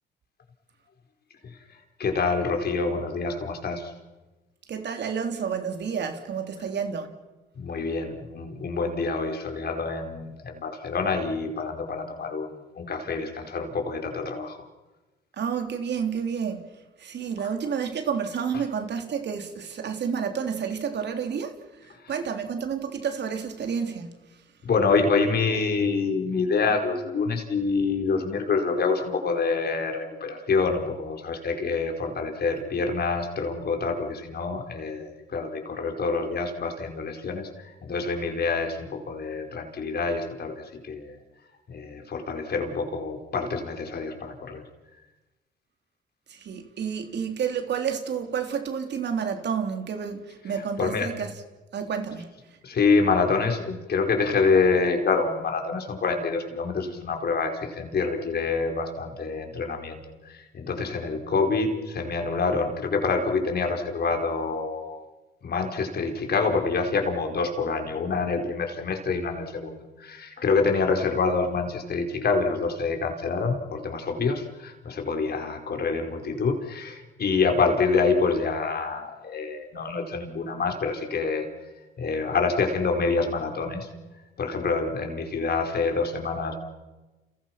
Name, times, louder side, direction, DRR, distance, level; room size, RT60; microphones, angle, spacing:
voice 1, 1.4-3.9 7.6-14.6 24.6-40.5 40.8-41.2 41.7-44.6 50.8-51.1 52.6-65.0 65.4-81.5 82.0-83.9 84.4-86.5, left 4 dB, 55° left, 4 dB, 4.7 m, -26 dB
voice 2, 4.7-7.2 15.3-16.7 17.0-24.4 46.3-51.3 51.7-52.6, right 7 dB, 60° right, 5 dB, 3.6 m, -30 dB
30.0 x 29.5 x 6.0 m, 1.2 s
cardioid pair, 90°, 20 cm